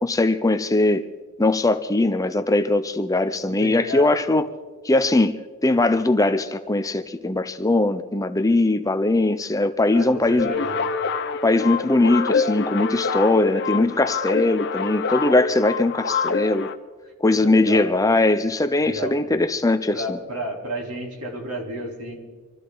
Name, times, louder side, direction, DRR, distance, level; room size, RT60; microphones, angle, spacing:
voice 1, 0.0-1.1 1.4-4.4 4.8-5.4 5.6-10.5 11.4-16.7 17.2-20.2, left 2 dB, 15° left, 10 dB, 0.5 m, -20 dB
voice 2, 3.6-4.1 9.9-10.8 17.2-18.2 18.8-19.2 19.9-22.2, equal, 90° right, 0 dB, 3.7 m, -31 dB
sound 1, 10.4-16.7, left 5 dB, 50° left, 0.8 m, -26 dB
26.0 x 13.5 x 3.9 m, 1.4 s
head